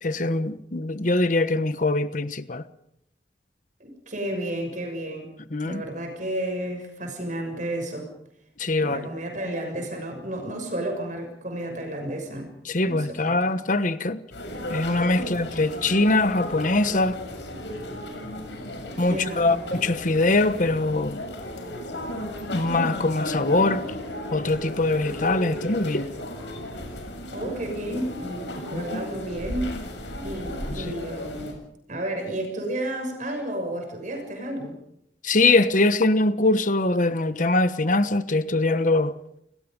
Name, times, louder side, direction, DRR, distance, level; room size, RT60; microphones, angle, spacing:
voice 1, 0.0-2.6 5.5-5.8 8.6-9.1 12.6-14.2 14.7-17.2 19.0-21.2 22.5-23.8 24.3-26.1 28.7-29.0 30.7-30.8 35.2-39.2, left 2 dB, 45° left, 1.2 m, -23 dB
voice 2, 3.8-5.3 5.6-8.1 8.8-12.5 12.8-13.5 15.2-15.4 19.1-19.6 27.3-29.8 30.2-31.6 31.9-34.8, right 1 dB, 45° right, 6.5 m, -32 dB
sound 1, 14.3-31.5, left 1 dB, 80° left, 7.5 m, -35 dB
30.0 x 20.0 x 5.4 m
head